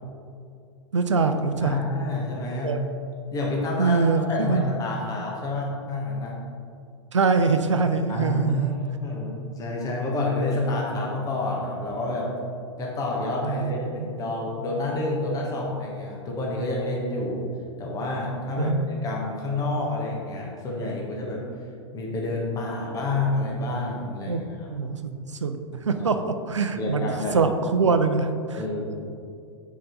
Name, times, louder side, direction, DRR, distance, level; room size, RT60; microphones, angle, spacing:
voice 1, 0.9-1.8 2.6-2.8 3.8-4.7 7.1-8.7 13.4-14.1 18.6-18.9 24.3-24.4 24.7-28.6, right 4 dB, 80° right, 8 dB, 0.6 m, -24 dB
voice 2, 1.6-2.7 3.3-4.0 4.3-6.3 8.1-12.3 12.8-17.4 17.8-21.4 21.9-24.7 26.7-27.4 28.5-28.9, left 2 dB, 25° left, -3 dB, 1.5 m, -28 dB
7.3 x 5.1 x 4.1 m, 2.3 s
figure-of-eight pair, 95°, 15 cm